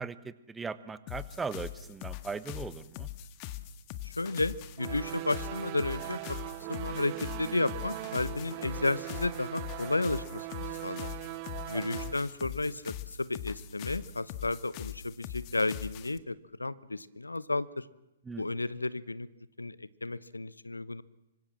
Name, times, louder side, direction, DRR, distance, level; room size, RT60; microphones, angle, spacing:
voice 1, 0.0-3.1 11.7-12.0 18.2-18.4, right 5 dB, 10° right, 15 dB, 1.2 m, -39 dB
sound 1, 1.1-16.2, left 12 dB, 35° left, 1.7 m, -42 dB
voice 2, 4.0-6.4 6.7-11.1 11.7-17.9 18.4-19.3 19.6-21.0, left 2 dB, 85° left, 18 dB, 1.1 m, -33 dB
sound 2, 4.8-12.1, right 19 dB, 35° right, 1.2 m, -40 dB
26.0 x 25.0 x 7.6 m, 0.93 s
figure-of-eight pair, 120°, 0 cm